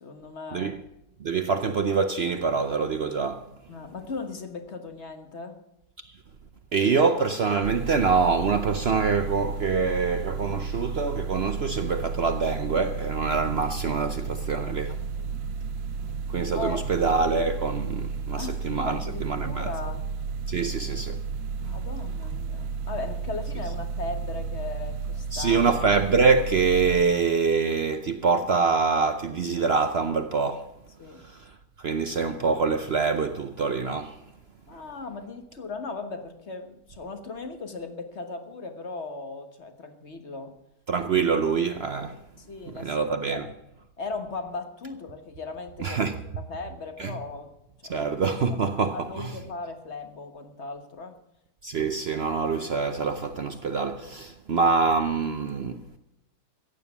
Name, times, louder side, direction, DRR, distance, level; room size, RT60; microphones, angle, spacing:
voice 1, 0.0-0.8 3.7-5.6 14.9-15.3 16.5-16.8 18.4-20.1 21.6-25.7 31.0-31.2 34.7-40.5 42.5-43.5 44.0-46.0 46.4-47.5 47.8-48.2 48.5-48.6 49.0-51.2, left 3 dB, 45° left, 1.6 m, -37 dB
voice 2, 1.2-3.4 6.7-15.0 16.3-19.0 19.2-19.7 20.5-21.2 25.3-30.7 31.8-34.2 40.9-42.2 42.7-43.5 45.8-46.2 47.0-47.1 47.9-49.3 51.6-56.0, right 5 dB, 50° right, 0.8 m, -25 dB
sound 1, 7.6-27.0, right 5 dB, 75° right, 1.2 m, -33 dB
14.5 x 9.3 x 7.0 m
omnidirectional pair, 1.6 m